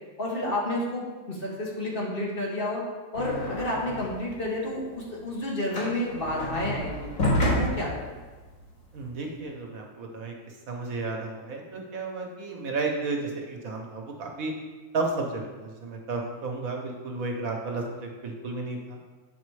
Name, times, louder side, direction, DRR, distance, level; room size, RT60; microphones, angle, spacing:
voice 1, 0.2-2.8 3.1-7.1 7.4-8.2, left 1 dB, 40° left, -4 dB, 1.6 m, -30 dB
sound 1, 3.1-4.3 4.6-9.2, equal, 70° left, 2.4 m, -29 dB
voice 2, 8.9-14.5 14.9-19.0, right 3 dB, 80° right, 1 dB, 1.4 m, -33 dB
8.2 x 4.2 x 4.8 m, 1.3 s
omnidirectional pair, 1.5 m